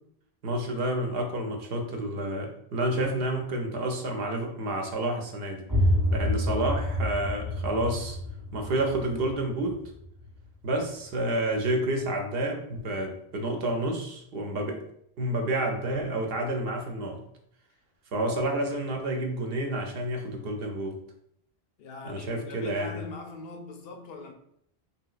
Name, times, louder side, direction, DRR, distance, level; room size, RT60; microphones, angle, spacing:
voice 1, 0.4-5.6 6.1-8.2 8.5-9.8 10.6-14.8 15.2-17.2 18.1-21.0 22.0-23.0, right 1 dB, 70° right, 0.8 m, -29 dB
sound 1, 5.7-11.3, left 1 dB, 40° right, 0.8 m, -29 dB
voice 2, 21.8-24.3, left 3 dB, 75° left, 0.8 m, -42 dB
3.2 x 2.8 x 2.4 m
omnidirectional pair, 1.0 m